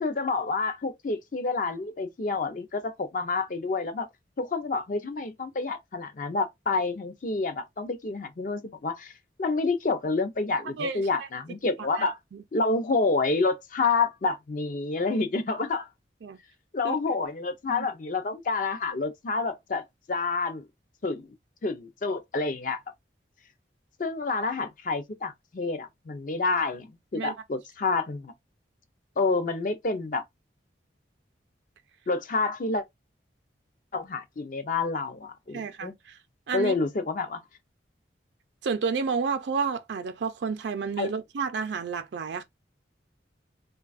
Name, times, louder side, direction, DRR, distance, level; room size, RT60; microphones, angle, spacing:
voice 1, 0.0-4.1 4.4-9.1 9.4-12.2 12.5-15.9 16.7-20.7 21.0-21.3 21.6-22.8 24.0-28.3 29.2-30.2 32.1-32.8 33.9-35.9 36.5-37.4 41.0-41.1, left 3 dB, 45° left, 0.5 m, -28 dB
voice 2, 10.8-11.3 11.9-12.4 16.2-16.4 16.8-17.0 17.7-17.9 27.1-27.3 35.5-36.2 36.5-36.7 38.6-42.4, right 5 dB, 75° right, 0.4 m, -31 dB
3.2 x 2.2 x 2.3 m
head